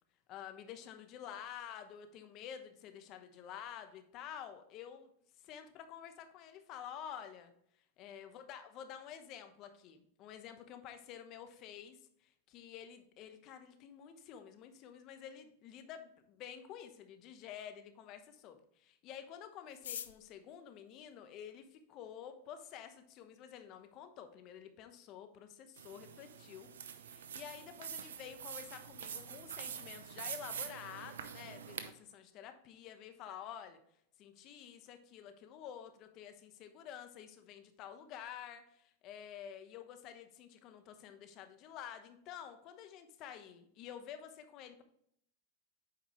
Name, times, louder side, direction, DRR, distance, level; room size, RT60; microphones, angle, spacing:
voice 1, 0.3-5.1 5.4-7.5 8.0-26.7 27.0-33.8 34.2-44.8, left 9 dB, 45° left, 8 dB, 1.0 m, -50 dB
sound 1, 19.7-21.9 22.7-22.8 23.0-23.1 23.4-23.9 24.2-24.3 24.5-24.9 25.2-25.4 25.8-26.1, left 9 dB, 85° left, 0.5 m, -48 dB
sound 2, 25.8-31.9, right 8 dB, 85° right, 0.7 m, -46 dB
8.3 x 4.9 x 3.1 m, 0.70 s
hypercardioid pair, 120°, 0 cm